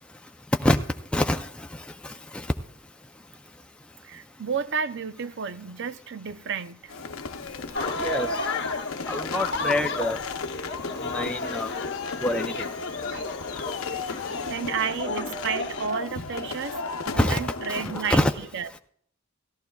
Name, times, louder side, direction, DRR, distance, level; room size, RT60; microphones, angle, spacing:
voice 1, 1.1-1.4 8.0-8.3 9.1-10.2 11.1-11.7 12.2-12.5 17.2-17.4 17.7-18.3, left 1 dB, 5° left, 0.4 m, -25 dB
voice 2, 4.0-6.9 13.1-13.3 13.9-14.0 14.5-18.8, right 6 dB, 60° right, 0.5 m, -32 dB
sound 1, 6.9-18.1, left 3 dB, 85° left, 0.8 m, -34 dB
sound 2, 7.7-15.9, left 3 dB, 55° left, 1.1 m, -33 dB
17.5 x 14.0 x 2.3 m
head